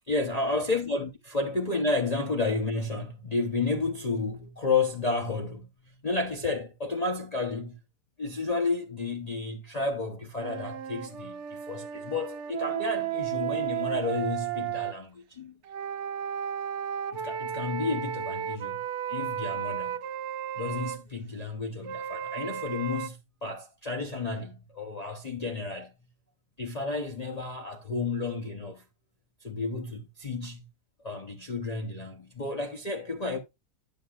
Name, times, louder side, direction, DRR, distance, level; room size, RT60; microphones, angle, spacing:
voice 1, 0.1-7.8 8.2-15.6 17.1-18.8 19.1-20.0 20.5-25.9 26.6-28.8 29.4-30.7 31.0-33.4, left 3 dB, 35° left, 0.7 m, -31 dB
sound 1, 10.4-14.9 15.7-21.0 21.8-23.1, right 10 dB, 65° right, 0.8 m, -34 dB
11.0 x 6.8 x 2.3 m
omnidirectional pair, 1.5 m